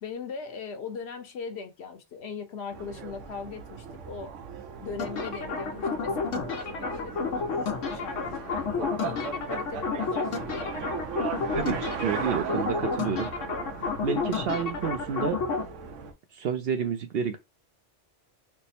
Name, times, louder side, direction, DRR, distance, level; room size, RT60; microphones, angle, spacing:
voice 1, 0.0-4.4 4.8-10.8, left 5 dB, 65° left, 0.9 m, -40 dB
sound 1, 2.7-16.1, right 6 dB, 90° right, 1.0 m, -38 dB
sound 2, 5.0-15.6, left 4 dB, 90° left, 1.1 m, -31 dB
voice 2, 11.5-13.3 14.0-15.4 16.3-17.4, right 7 dB, 65° right, 0.7 m, -29 dB
3.4 x 2.0 x 4.0 m
omnidirectional pair, 1.2 m